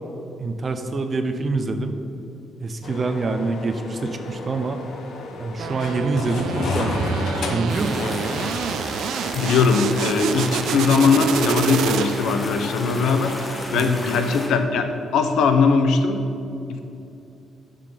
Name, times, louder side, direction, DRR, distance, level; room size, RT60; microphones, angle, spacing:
voice 1, 0.4-2.0 2.6-4.8 5.4-7.1 7.5-8.0 13.7-14.0, right 3 dB, 30° right, 7 dB, 0.7 m, -25 dB
sound 1, 2.8-8.7, left 2 dB, 60° left, 1.0 m, -30 dB
sound 2, 5.6-12.4, right 8 dB, 80° right, 0.4 m, -28 dB
sound 3, 7.7-14.5, left 1 dB, 15° left, 1.5 m, -33 dB
voice 2, 9.3-16.2 16.7-16.8, left 5 dB, 85° left, 7 dB, 0.9 m, -20 dB
9.7 x 6.7 x 5.9 m, 2.7 s
cardioid pair, 165°, 0 cm